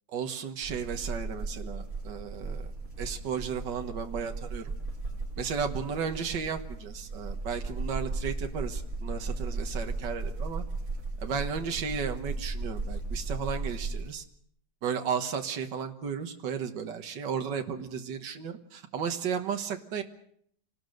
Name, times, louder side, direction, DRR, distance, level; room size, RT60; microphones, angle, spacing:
voice 1, 0.1-2.7 3.0-4.7 5.4-10.6 11.2-14.2 14.8-20.0, right 6 dB, 75° right, 6 dB, 2.0 m, -34 dB
sound 1, 0.6-14.1, right 3 dB, 50° right, 3.1 m, -36 dB
27.5 x 19.5 x 6.6 m, 0.69 s
omnidirectional pair, 2.0 m